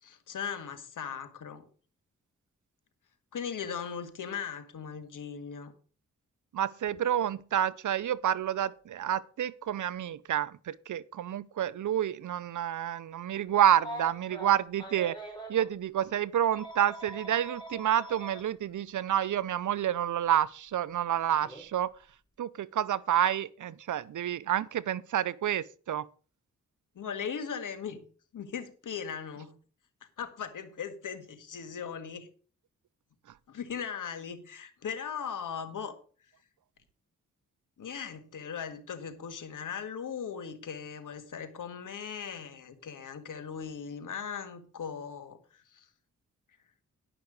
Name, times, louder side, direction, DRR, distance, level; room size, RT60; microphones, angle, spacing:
voice 1, 0.0-1.7 3.3-5.7 27.0-28.0 28.3-29.5 30.2-32.3 33.5-36.0 37.8-45.9, left 7 dB, 75° left, 1.8 m, -38 dB
voice 2, 6.5-15.2 15.5-21.9 22.4-26.1, right 10 dB, 70° right, 0.6 m, -29 dB
Telephone, 13.8-15.7 16.5-18.4 19.8-19.9 21.4-21.6, right 1 dB, 15° left, 4.8 m, -42 dB
11.5 x 6.0 x 6.4 m
cardioid pair, 55°, 31 cm